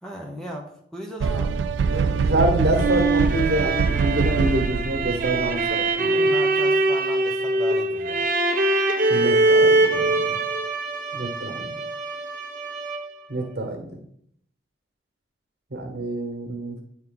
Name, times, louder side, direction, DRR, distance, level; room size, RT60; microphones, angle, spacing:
voice 1, 0.0-2.4 5.4-5.9 6.2-8.3, equal, 5° left, 0 dB, 0.7 m, -37 dB
sound 1, 1.2-5.7, right 5 dB, 85° right, 0.3 m, -24 dB
voice 2, 2.3-5.6 6.0-6.3 9.1-10.1 11.1-11.7 13.3-14.0 15.7-16.8, right 1 dB, 65° right, 3 dB, 1.3 m, -26 dB
sound 2, 2.4-13.3, right 2 dB, 50° right, 0.7 m, -23 dB
9.2 x 3.2 x 3.7 m, 0.67 s
head